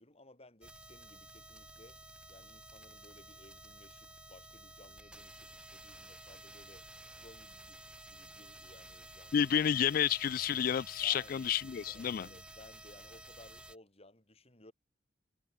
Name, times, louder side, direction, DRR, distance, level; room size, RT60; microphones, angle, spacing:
voice 1, 0.0-2.0 2.3-9.5 9.9-10.1 11.0-11.5 11.9-14.7, left 2 dB, 35° left, 5.1 m, -59 dB
sound 1, 0.6-13.8, right 1 dB, 5° right, 1.6 m, -53 dB
voice 2, 9.3-12.3, left 9 dB, 50° left, 0.3 m, -30 dB
head